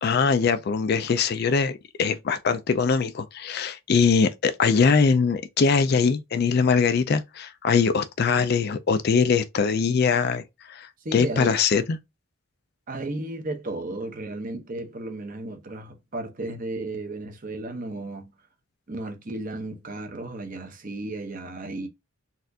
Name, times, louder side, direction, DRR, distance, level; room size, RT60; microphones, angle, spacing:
voice 1, 0.0-12.0, left 5 dB, 45° left, 0.3 m, -22 dB
voice 2, 11.0-11.6 12.9-18.3 18.9-21.9, right 2 dB, 40° right, 0.8 m, -34 dB
4.1 x 2.5 x 2.7 m
head